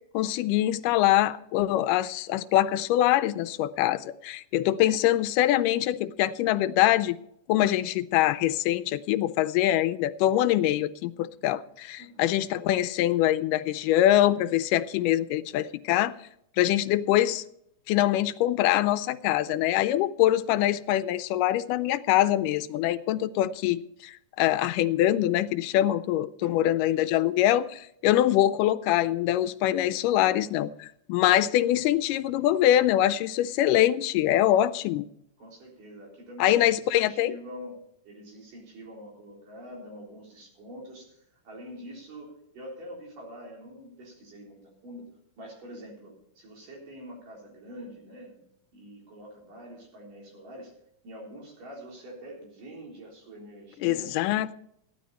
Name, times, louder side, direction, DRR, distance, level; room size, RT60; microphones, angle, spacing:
voice 1, 0.1-7.2 7.5-16.1 16.6-17.4 17.9-35.1 36.4-37.3 53.8-54.5, left 13 dB, 85° left, 2.2 m, -24 dB
voice 2, 12.0-12.4 26.4-26.7 35.4-37.8 38.1-45.1 45.4-48.4 48.7-50.7 51.0-54.1, equal, 85° right, 5.5 m, -45 dB
15.0 x 11.5 x 4.2 m
omnidirectional pair, 3.7 m